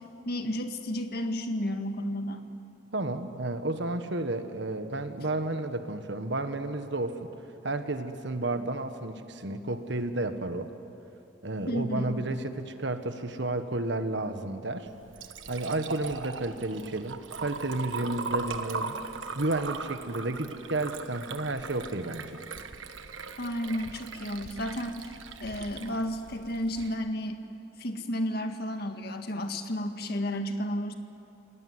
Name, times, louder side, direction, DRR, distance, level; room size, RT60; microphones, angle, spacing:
voice 1, 0.0-2.5 11.7-12.2 23.4-25.1 25.4-27.4 27.8-30.9, equal, 55° left, 6 dB, 1.9 m, -32 dB
voice 2, 2.9-7.3 7.6-10.7 11.4-14.9 15.5-19.0 19.3-22.4, right 2 dB, 60° right, 8 dB, 1.5 m, -32 dB
Liquid, 14.9-26.9, right 4 dB, 80° right, 1.4 m, -39 dB
28.5 x 18.5 x 9.6 m, 3.0 s
head